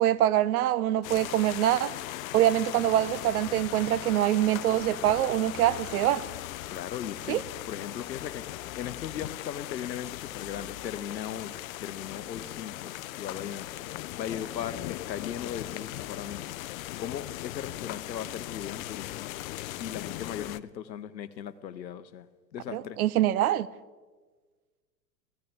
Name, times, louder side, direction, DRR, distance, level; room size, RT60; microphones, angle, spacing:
voice 1, 0.0-1.9 2.3-6.2 7.3-7.4 22.7-23.7, right 12 dB, 60° right, 0.6 m, -24 dB
sound 1, 1.0-20.6, left 16 dB, 55° left, 0.5 m, -39 dB
voice 2, 6.7-13.7 14.2-16.6 17.0-19.3 19.8-22.3 22.5-23.0, left 9 dB, 85° left, 0.8 m, -38 dB
15.0 x 14.0 x 3.6 m
hypercardioid pair, 105°, 50 cm